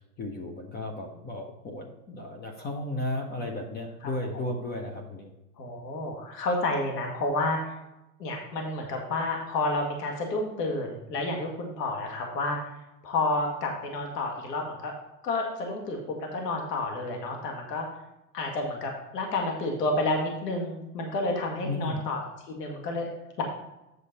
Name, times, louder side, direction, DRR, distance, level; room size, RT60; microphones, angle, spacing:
voice 1, 0.2-5.3 21.7-22.0, left 1 dB, 20° left, 3 dB, 0.9 m, -34 dB
voice 2, 5.6-7.8 8.2-12.6 13.0-14.9 15.2-17.9 18.3-22.2 22.5-23.1 23.4-23.5, left 2 dB, 75° left, 1 dB, 2.1 m, -30 dB
8.4 x 6.4 x 4.1 m, 0.95 s
hypercardioid pair, 135°, 49 cm